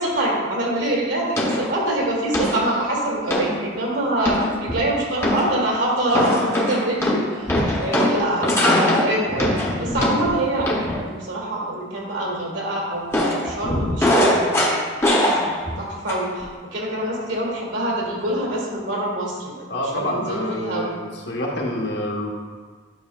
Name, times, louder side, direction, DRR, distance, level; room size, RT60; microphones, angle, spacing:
voice 1, 0.0-7.5 7.8-9.5 9.8-10.7 10.9-14.9 15.2-15.4 15.8-20.9, right 1 dB, 75° right, -4 dB, 1.9 m, -25 dB
sound 1, 1.4-1.8 2.3-2.8 3.3-3.6 4.2-4.8 5.2-5.6 6.1-11.1 13.1-15.8 16.1-16.4, left 1 dB, 15° left, 0.7 m, -21 dB
voice 2, 19.7-22.3, left 1 dB, 60° left, -2 dB, 1.1 m, -27 dB
9.6 x 5.8 x 2.3 m, 1.5 s
head